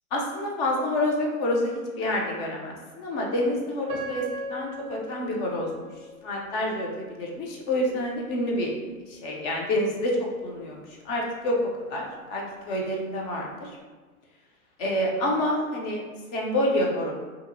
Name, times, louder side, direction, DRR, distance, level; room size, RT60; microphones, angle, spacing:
voice 1, 0.1-4.2 4.5-5.9 6.2-6.9 7.2-8.7 9.1-11.6 11.9-13.8 14.8-16.0 16.3-17.1, left 1 dB, 35° left, -1 dB, 0.5 m, -28 dB
Piano, 3.9-6.9 7.5-7.6 8.2-8.5, right 1 dB, 35° right, 0.5 m, -39 dB
2.8 x 2.4 x 2.5 m, 1.3 s
hypercardioid pair, 120°, 43 cm